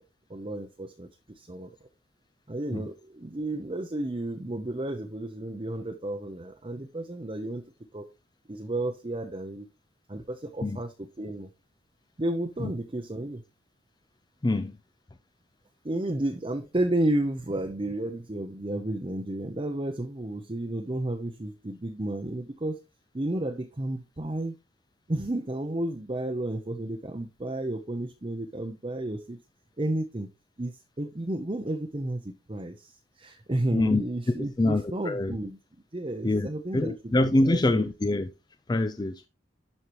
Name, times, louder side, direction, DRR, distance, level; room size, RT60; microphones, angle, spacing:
voice 1, 0.3-1.1 1.4-1.7 2.5-7.6 7.9-8.1 8.5-9.7 10.1-11.5 12.2-13.4 15.8-22.8 23.1-24.5 25.1-29.4 29.8-30.3 30.6-35.6 35.9-37.2 37.4-37.9, right 1 dB, 25° right, 0.7 m, -32 dB
voice 2, 14.4-14.8 33.7-34.0 34.6-35.4 36.2-36.5 36.7-38.3 38.7-39.3, left 2 dB, 20° left, 0.4 m, -25 dB
11.5 x 5.6 x 3.0 m
head